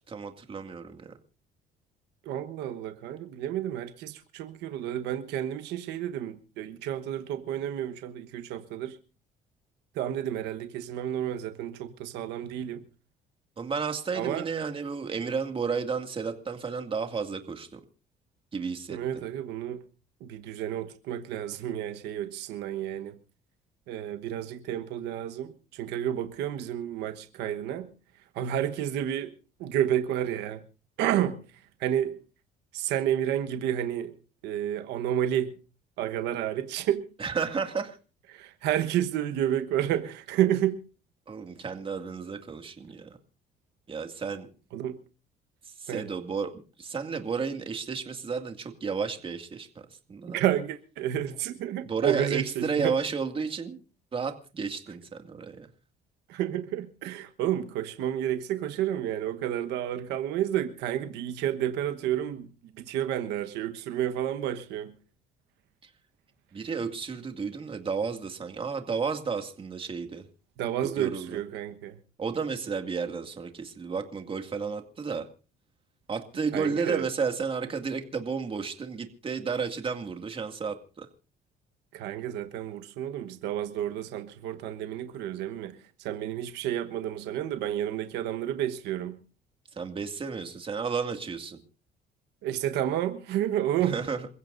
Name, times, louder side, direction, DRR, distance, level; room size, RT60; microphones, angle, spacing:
voice 1, 0.1-1.1 13.6-17.8 18.5-19.3 37.2-38.0 41.3-43.1 43.9-44.5 45.8-46.5 46.8-50.4 51.8-53.8 54.1-55.7 65.8-65.9 66.5-70.3 70.8-71.4 72.2-75.3 76.1-81.1 89.7-91.6 93.8-94.3, right 5 dB, 30° right, 2.2 m, -32 dB
voice 2, 2.2-9.0 9.9-12.8 14.1-14.5 18.9-19.8 20.2-23.2 23.9-27.9 28.3-29.3 29.6-30.6 31.0-31.4 31.8-32.2 32.7-34.1 34.4-35.5 36.0-37.1 38.3-40.8 44.7-45.0 45.9-46.0 50.3-52.9 56.3-64.9 70.6-72.0 76.5-77.1 81.9-89.2 92.4-94.0, right 11 dB, 90° right, 1.3 m, -30 dB
28.0 x 15.5 x 2.6 m
cardioid pair, 110°, 17 cm